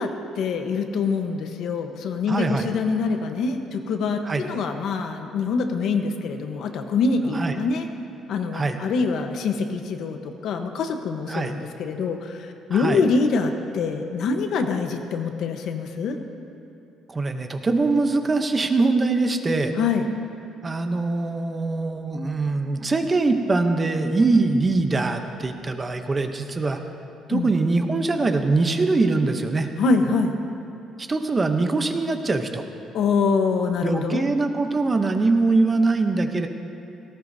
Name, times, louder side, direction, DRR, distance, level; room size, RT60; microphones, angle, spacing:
voice 1, 0.0-7.9 8.3-16.2 19.8-20.1 27.3-27.5 29.8-30.3 32.9-34.3, left 4 dB, 60° left, 6 dB, 1.0 m, -25 dB
voice 2, 2.3-2.7 4.2-4.4 7.3-7.6 8.5-8.8 11.3-11.5 12.7-13.0 17.1-19.7 20.6-26.8 27.3-29.7 31.0-32.6 33.8-36.5, right 3 dB, 20° right, 6 dB, 0.7 m, -22 dB
18.0 x 17.5 x 2.7 m, 2.7 s
cardioid pair, 160°, 0 cm